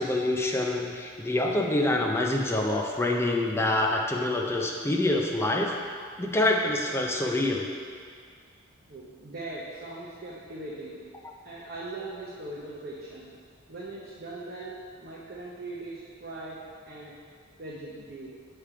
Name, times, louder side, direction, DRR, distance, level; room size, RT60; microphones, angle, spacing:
voice 1, 0.0-5.7 6.2-7.7 11.2-11.3, left 1 dB, 10° left, 0 dB, 0.4 m, -26 dB
voice 2, 8.9-11.1 11.4-13.3 13.7-16.6 16.9-17.1 17.6-18.3, right 2 dB, 45° right, -6 dB, 0.7 m, -40 dB
7.2 x 3.4 x 4.7 m, 2.1 s
head